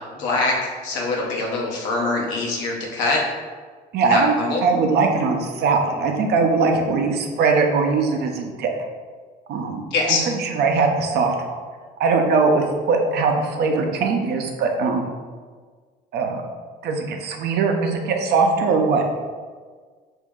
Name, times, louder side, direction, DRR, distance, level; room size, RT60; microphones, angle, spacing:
voice 1, 0.1-3.2 4.0-4.6 9.9-10.2, left 3 dB, 85° left, -2 dB, 0.9 m, -23 dB
voice 2, 3.9-4.4 4.6-8.7 9.5-9.8 10.1-11.3 12.0-15.1 16.1-16.4 16.8-19.0, right 4 dB, 65° right, 3 dB, 0.6 m, -20 dB
3.0 x 2.6 x 3.6 m, 1.6 s
cardioid pair, 90°, 19 cm